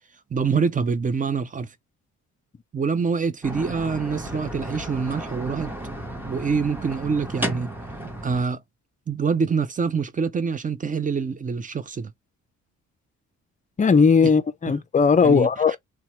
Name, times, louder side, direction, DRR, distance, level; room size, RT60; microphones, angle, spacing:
voice 1, 0.3-1.7 2.7-5.7 6.2-7.7 8.2-8.6 9.1-12.1 14.7-14.8 15.2-15.5, right 5 dB, 25° right, 0.5 m, -25 dB
sound 1, 3.4-8.4, right 1 dB, 5° right, 0.9 m, -33 dB
voice 2, 13.8-15.8, left 5 dB, 25° left, 0.5 m, -18 dB
2.9 x 2.2 x 2.9 m
cardioid pair, 90°, 30 cm